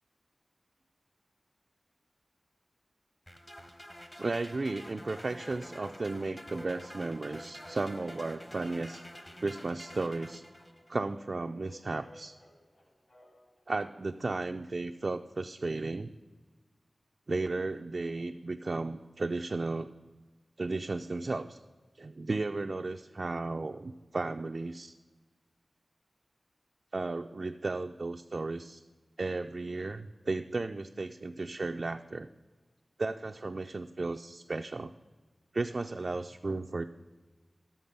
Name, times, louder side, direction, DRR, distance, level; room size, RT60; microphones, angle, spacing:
sound 1, 3.3-11.0, equal, 20° left, 0.9 m, -49 dB
voice 1, 4.2-9.1 9.4-10.4 10.9-12.3 13.7-16.1 17.3-19.9 20.6-21.6 22.0-25.0 26.9-28.8 29.2-32.3 33.0-34.9 35.5-36.9, right 3 dB, 55° right, 5 dB, 0.3 m, -34 dB
sound 2, 5.4-13.6, equal, 50° left, 2.5 m, -55 dB
11.5 x 7.3 x 5.3 m, 1.3 s
wide cardioid pair, 85°, 0 cm